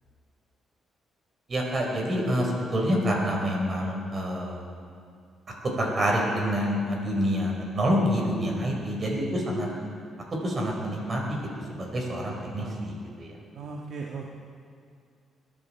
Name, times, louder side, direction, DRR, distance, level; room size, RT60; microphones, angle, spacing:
voice 1, 1.5-4.6 5.8-9.7 10.4-11.4 11.7-13.3, equal, 40° right, -1 dB, 5.1 m, -27 dB
voice 2, 12.4-12.8 13.5-14.3, right 4 dB, 60° right, 0 dB, 1.5 m, -38 dB
22.5 x 12.5 x 4.6 m, 2.2 s
cardioid pair, 90°, 0 cm